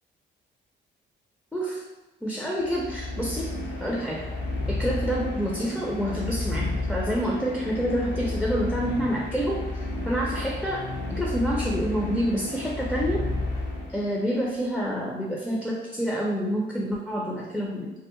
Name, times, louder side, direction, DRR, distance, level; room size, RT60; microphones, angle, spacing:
voice 1, 1.5-1.8 2.2-3.5 3.8-4.2 4.7-10.8 11.1-13.2 13.9-17.9, equal, 5° left, -3 dB, 0.4 m, -28 dB
sound 1, 2.6-14.3, left 2 dB, 65° left, 0.6 m, -32 dB
2.7 x 2.1 x 2.5 m, 1.1 s
cardioid pair, 90°, 20 cm